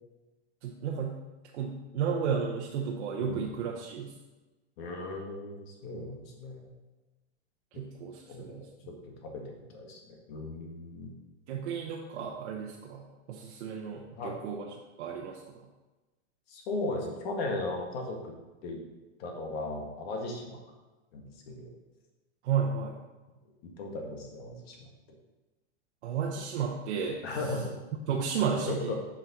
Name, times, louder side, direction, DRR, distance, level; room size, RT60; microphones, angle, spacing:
voice 1, 0.6-1.2 1.5-4.1 7.7-8.7 11.5-14.6 15.0-15.4 22.4-23.0 26.0-27.2 28.1-28.9, right 6 dB, 75° right, -1 dB, 1.0 m, -33 dB
voice 2, 4.8-6.7 7.7-7.8 8.3-11.1 14.1-14.4 16.5-18.3 18.6-18.8 19.2-20.6 21.1-21.7 23.6-24.9 27.2-27.7 28.5-28.9, left 2 dB, 55° left, 2 dB, 1.7 m, -37 dB
7.4 x 5.4 x 4.1 m, 1.1 s
supercardioid pair, 140°, 35 cm